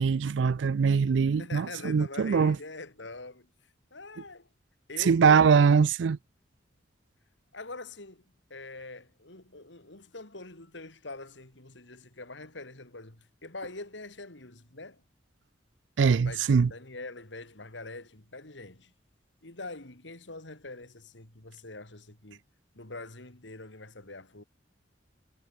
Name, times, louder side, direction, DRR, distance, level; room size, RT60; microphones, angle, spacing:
voice 1, 0.0-2.6 5.1-6.2 16.0-16.7, right 6 dB, 75° right, 0.4 m, -22 dB
voice 2, 1.4-3.5 3.9-4.5 4.9-5.8 7.5-8.2 8.5-15.0 16.2-18.9 19.4-22.4 22.7-24.4, left 2 dB, 75° left, 3.4 m, -44 dB
head